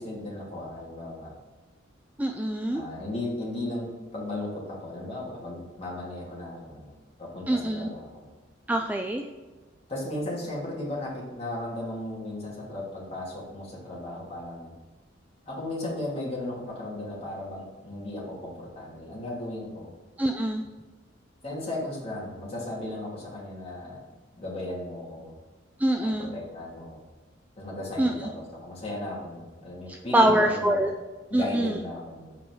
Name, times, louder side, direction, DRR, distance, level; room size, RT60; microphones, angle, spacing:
voice 1, 0.0-1.3 2.7-6.9 7.2-8.3 9.9-14.7 15.5-19.9 21.4-24.1 24.3-25.3 26.0-27.0 27.6-30.9 31.3-32.4, left 1 dB, 30° left, -5 dB, 2.5 m, -36 dB
voice 2, 2.2-2.8 7.5-7.9 8.7-9.3 20.2-20.6 25.8-26.3 28.0-28.1 29.9-30.9 31.3-31.8, right 1 dB, 10° right, 4 dB, 0.3 m, -24 dB
7.5 x 4.9 x 4.7 m, 1.3 s
head